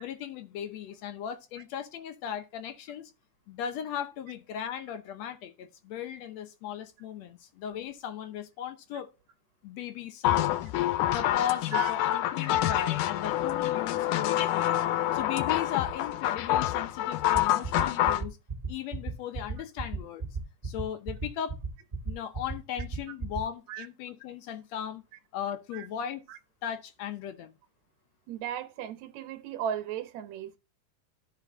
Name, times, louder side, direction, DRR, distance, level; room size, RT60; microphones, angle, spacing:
voice 1, 0.0-3.1 3.5-9.1 9.6-10.5 11.1-14.8 15.1-18.4 18.7-20.2 20.6-21.6 22.0-25.0 25.3-26.2 26.6-27.5, left 9 dB, 70° left, 1.8 m, -37 dB
sound 1, 10.2-18.2, left 13 dB, 90° left, 2.3 m, -27 dB
sound 2, 17.3-23.4, right 4 dB, 20° right, 1.6 m, -33 dB
voice 2, 28.3-30.6, right 9 dB, 70° right, 2.1 m, -36 dB
12.5 x 5.0 x 3.5 m
omnidirectional pair, 3.6 m